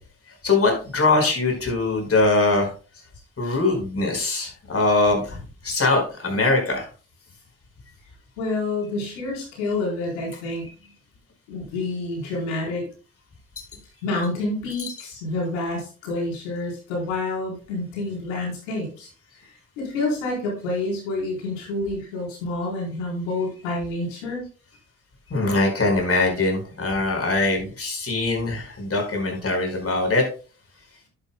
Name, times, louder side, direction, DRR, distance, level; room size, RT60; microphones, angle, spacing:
voice 1, 0.4-2.7 3.4-5.4 5.6-6.9 14.8-14.9 25.3-30.2, left 2 dB, 40° left, 2 dB, 4.9 m, -22 dB
voice 2, 8.4-10.6 11.5-12.9 14.0-19.1 19.4-24.4, left 2 dB, 90° left, -2 dB, 4.1 m, -28 dB
10.5 x 9.8 x 2.2 m, 0.37 s
hypercardioid pair, 50°, 35 cm